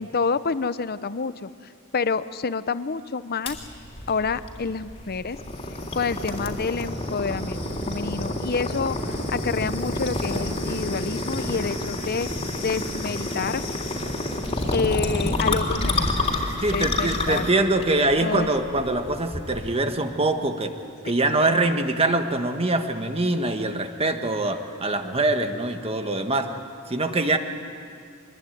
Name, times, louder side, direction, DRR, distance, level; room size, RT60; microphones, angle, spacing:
voice 1, 0.0-1.5 1.9-3.6 4.1-5.4 5.9-7.6 7.9-12.3 12.6-13.6 14.7-16.1 16.7-17.5 18.2-18.5 21.0-21.2, left 5 dB, 45° left, 14 dB, 0.7 m, -28 dB
sound 1, 3.5-19.7, left 1 dB, 25° left, 3.3 m, -29 dB
voice 2, 16.6-20.7 21.0-26.5 26.9-27.4, right 2 dB, 30° right, 6 dB, 1.5 m, -23 dB
25.0 x 21.5 x 9.4 m, 2.2 s
head